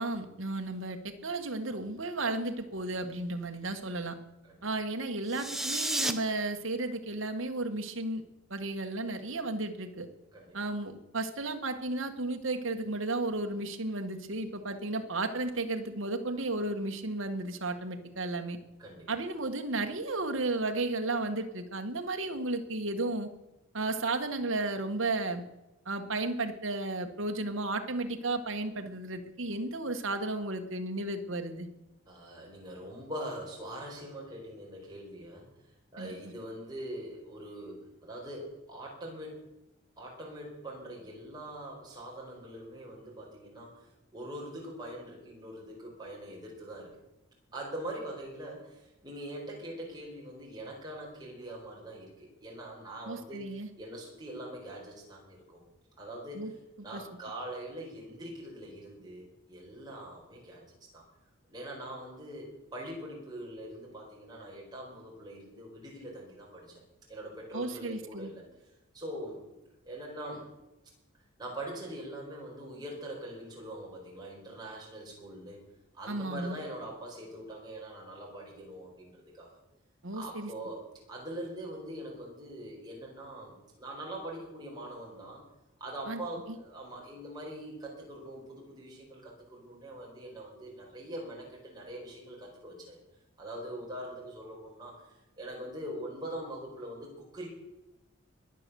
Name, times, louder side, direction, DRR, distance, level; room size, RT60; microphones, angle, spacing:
voice 1, 0.0-4.2 4.6-8.2 8.5-10.1 10.5-18.6 19.1-23.3 23.7-25.4 25.8-31.7 36.0-36.2 53.1-53.7 56.3-56.5 56.9-57.0 67.5-68.3 76.1-76.6 80.0-80.5 86.1-86.2, right 2 dB, 70° right, 6 dB, 1.5 m, -33 dB
sound 1, 5.3-6.1, right 1 dB, ahead, 0.7 m, -31 dB
voice 2, 32.1-35.5 35.9-39.4 40.0-43.9 44.1-46.9 47.5-55.6 56.0-56.6 56.8-61.0 61.5-66.8 67.1-68.4 68.9-69.4 69.8-70.5 71.4-75.6 75.9-79.5 80.1-85.4 85.8-93.0 93.4-95.0 95.4-97.5, right 1 dB, 20° right, -3 dB, 4.8 m, -43 dB
21.5 x 7.8 x 6.9 m, 0.98 s
head